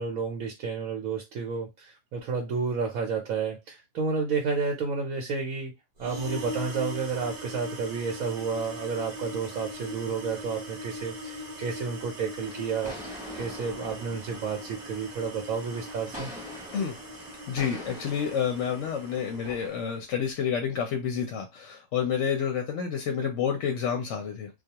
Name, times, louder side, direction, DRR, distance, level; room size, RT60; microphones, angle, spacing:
voice 1, 0.0-5.7 6.0-13.0 13.3-16.3, right 5 dB, 80° right, 1.0 m, -31 dB
sound 1, 6.0-19.9, equal, 40° right, 0.7 m, -40 dB
sound 2, 12.4-19.7, left 1 dB, 5° right, 0.8 m, -45 dB
voice 2, 17.5-24.5, left 7 dB, 70° left, 0.8 m, -29 dB
2.3 x 2.3 x 2.8 m
omnidirectional pair, 1.5 m